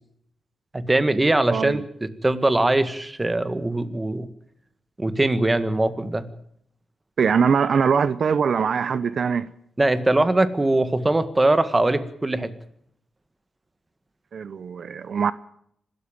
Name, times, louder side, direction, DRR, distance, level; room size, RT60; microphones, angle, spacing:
voice 1, 0.7-1.8 2.2-4.3 5.0-6.3 9.8-12.5, right 2 dB, 20° right, 1.8 m, -21 dB
voice 2, 1.5-1.8 7.2-9.5 14.3-15.3, right 6 dB, 60° right, 0.8 m, -22 dB
26.0 x 13.5 x 8.8 m
cardioid pair, 105°, 0 cm